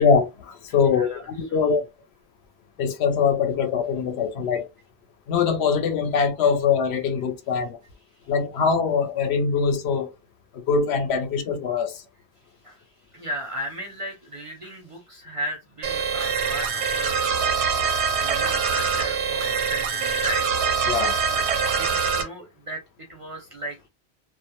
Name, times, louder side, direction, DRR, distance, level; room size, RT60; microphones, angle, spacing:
voice 1, 0.0-1.8 2.8-4.7 5.3-7.8 8.3-10.1 10.7-12.0 20.9-21.2, left 5 dB, 85° left, 0.8 m, -22 dB
voice 2, 0.9-1.9 12.6-17.3 17.8-20.5 21.2-23.9, equal, 50° right, 0.4 m, -36 dB
sound 1, 15.8-22.2, right 6 dB, 85° right, 0.9 m, -24 dB
2.1 x 2.1 x 2.8 m
omnidirectional pair, 1.1 m